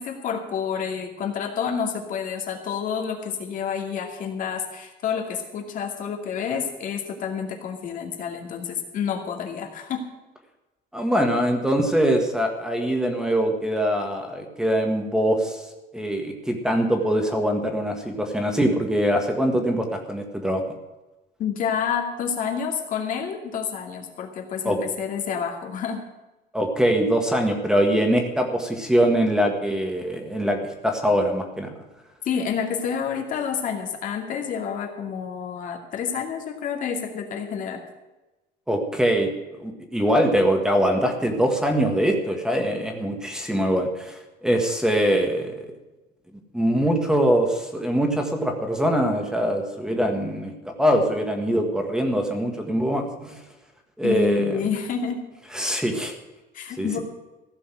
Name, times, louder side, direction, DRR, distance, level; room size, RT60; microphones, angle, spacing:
voice 1, 0.0-10.1 21.4-26.0 32.2-37.8 54.0-55.3 56.5-57.0, left 7 dB, 45° left, 2 dB, 2.4 m, -29 dB
voice 2, 10.9-15.6 15.9-20.6 24.6-24.8 26.5-30.6 30.8-31.7 38.7-39.3 39.6-45.7 46.5-50.5 50.8-53.3 54.0-54.6 55.5-56.1 56.8-57.0, equal, 5° right, 4 dB, 1.7 m, -23 dB
15.5 x 7.0 x 9.1 m, 1.1 s
cardioid pair, 165°, 18 cm